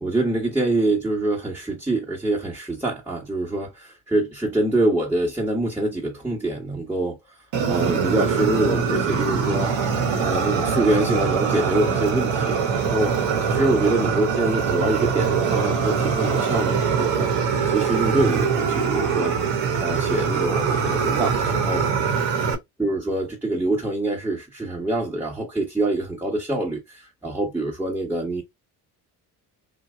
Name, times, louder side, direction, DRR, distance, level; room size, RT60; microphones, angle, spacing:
voice 1, 0.0-7.4 7.6-9.7 10.2-13.1 13.4-17.3 17.7-19.4 19.8-21.8 22.8-28.4, right 2 dB, 5° right, 1.3 m, -25 dB
Fire, 7.5-22.5, right 6 dB, 65° right, 1.1 m, -23 dB
3.2 x 2.2 x 3.4 m
hypercardioid pair, 55°, 47 cm